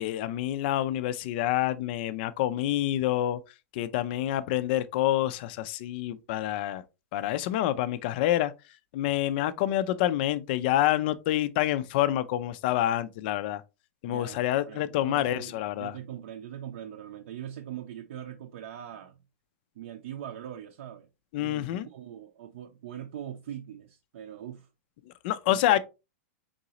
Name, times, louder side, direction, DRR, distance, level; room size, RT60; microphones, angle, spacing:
voice 1, 0.0-3.4 3.7-6.8 7.1-8.5 8.9-13.6 14.0-15.9 21.3-21.9 25.2-25.8, left 13 dB, 40° left, 0.3 m, -27 dB
voice 2, 14.1-14.4 14.7-19.2 19.8-21.1 21.4-24.7 25.5-25.8, right 10 dB, 60° right, 0.6 m, -41 dB
3.9 x 3.8 x 2.8 m
supercardioid pair, 160°, 8 cm